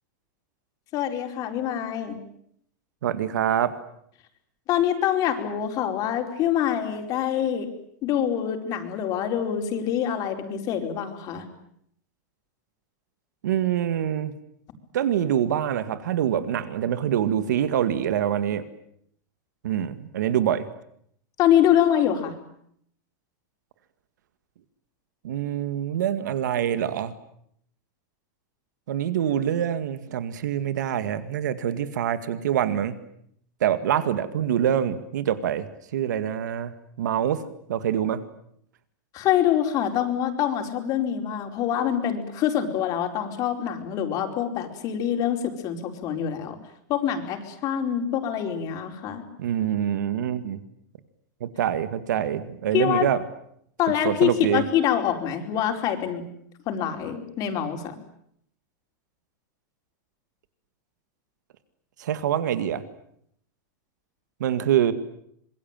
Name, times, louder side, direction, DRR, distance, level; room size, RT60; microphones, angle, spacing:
voice 1, 0.9-2.2 4.7-7.7 8.0-11.5 21.4-22.4 39.1-46.6 46.9-49.2 52.7-53.1 53.8-56.2 56.7-58.0, left 10 dB, 40° left, 5 dB, 4.6 m, -25 dB
voice 2, 3.0-3.7 13.4-14.3 14.9-18.6 19.6-20.7 25.2-27.1 28.9-33.0 33.6-38.2 49.4-50.6 51.4-53.2 54.0-54.6 62.0-62.8 64.4-64.9, right 10 dB, 85° right, 12 dB, 2.1 m, -25 dB
26.5 x 23.0 x 9.1 m, 0.70 s
supercardioid pair, 140°, 9 cm